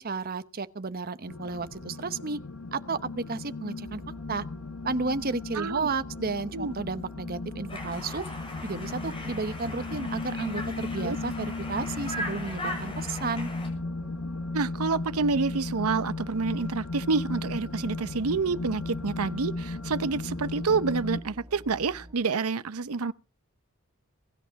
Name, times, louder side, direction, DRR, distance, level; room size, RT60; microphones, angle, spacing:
voice 1, 0.0-2.4 2.7-4.0 4.3-4.5 4.8-8.3 8.6-13.5, right 4 dB, 40° right, 0.8 m, -32 dB
sound 1, 1.3-21.2, left 3 dB, 70° left, 1.2 m, -36 dB
sound 2, 3.8-22.2, equal, 15° right, 5.1 m, -48 dB
voice 2, 5.5-5.9 6.5-6.7 11.0-11.2 14.5-23.1, right 4 dB, 80° right, 0.7 m, -28 dB
Conversation, 7.7-13.7, left 1 dB, 25° left, 6.6 m, -39 dB
22.0 x 11.0 x 4.7 m
head